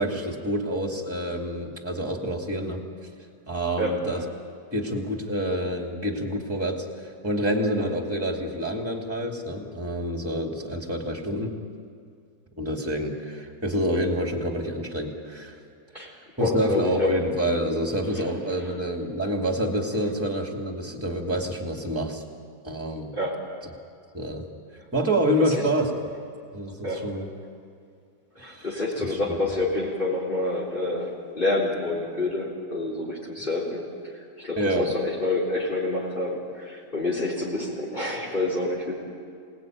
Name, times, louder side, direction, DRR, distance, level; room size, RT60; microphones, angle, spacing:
voice 1, 0.0-2.8 3.5-4.2 4.7-11.5 12.6-15.6 16.4-22.2 22.6-23.1 24.1-24.5 24.9-25.9 26.5-27.3 28.4-28.8 29.3-29.4 34.6-34.9, equal, 10° right, 2 dB, 2.6 m, -27 dB
voice 2, 16.4-17.1 18.2-18.3 23.1-23.4 25.4-25.7 26.8-27.0 28.4-31.1 31.4-33.8 34.1-38.9, left 2 dB, 30° left, -4 dB, 4.1 m, -28 dB
27.0 x 19.0 x 9.3 m, 2.3 s
omnidirectional pair, 1.8 m